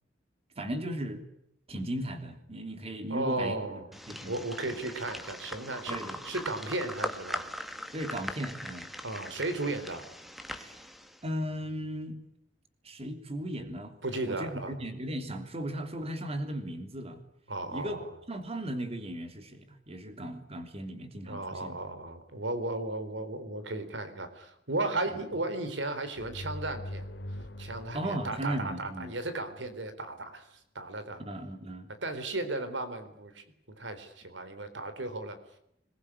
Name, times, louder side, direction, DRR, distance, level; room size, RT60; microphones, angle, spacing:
voice 1, 0.5-1.2 1.7-3.6 4.1-4.3 4.6-4.7 5.9-6.3 7.9-8.9 10.6-10.7 11.2-12.2 12.8-14.0 14.2-17.2 17.7-18.0 18.3-21.8 27.9-29.1 31.2-31.9, right 1 dB, 35° right, 6 dB, 3.3 m, -36 dB
voice 2, 3.1-3.9 4.3-6.0 6.2-7.5 9.0-10.0 14.0-14.7 17.5-18.0 21.3-27.1 27.6-30.5 30.7-31.2 32.0-33.4 33.8-35.4, right 2 dB, 85° right, 10 dB, 3.9 m, -35 dB
sound 1, 3.9-11.2, equal, ahead, 1.9 m, -40 dB
sound 2, 26.1-29.7, left 1 dB, 70° left, 2.5 m, -43 dB
26.5 x 22.0 x 10.0 m, 0.76 s
head